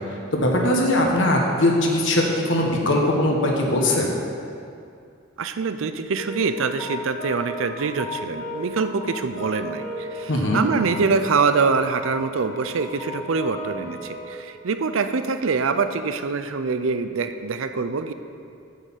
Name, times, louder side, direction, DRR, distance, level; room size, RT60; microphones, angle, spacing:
voice 1, 0.3-4.1 10.3-10.6, left 1 dB, 60° left, 0 dB, 1.5 m, -20 dB
voice 2, 5.4-18.1, right 4 dB, 75° right, 10 dB, 0.5 m, -24 dB
sound 1, 6.2-14.3, left 1 dB, 10° left, 2.0 m, -35 dB
8.2 x 6.6 x 7.4 m, 2.4 s
head